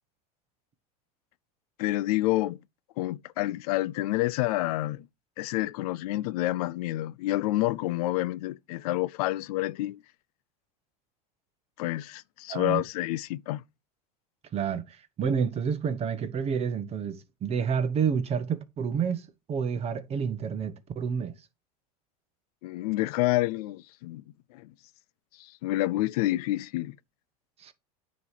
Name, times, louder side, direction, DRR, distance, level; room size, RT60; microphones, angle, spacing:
voice 1, 1.8-2.6 3.0-5.1 5.4-10.0 11.8-13.6 22.6-24.2 24.5-24.7 25.4-26.9, left 17 dB, 70° left, 0.4 m, -28 dB
voice 2, 12.5-12.8 14.5-21.3 27.6-27.7, right 6 dB, 30° right, 1.0 m, -29 dB
9.3 x 3.2 x 5.7 m
supercardioid pair, 115°, 20 cm